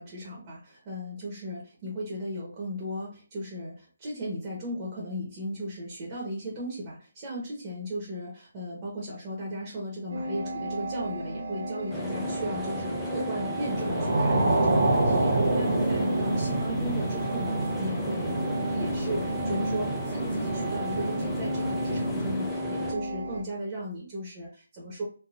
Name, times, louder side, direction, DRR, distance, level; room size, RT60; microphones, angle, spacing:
voice 1, 0.0-25.0, equal, 25° right, -4 dB, 0.9 m, -36 dB
sound 1, 10.1-23.4, right 1 dB, 85° right, 0.7 m, -32 dB
sound 2, 11.9-22.9, left 2 dB, 5° left, 0.4 m, -38 dB
sound 3, 13.6-22.4, right 2 dB, 50° right, 1.1 m, -28 dB
3.3 x 2.2 x 2.4 m, 0.39 s
hypercardioid pair, 160°, 0 cm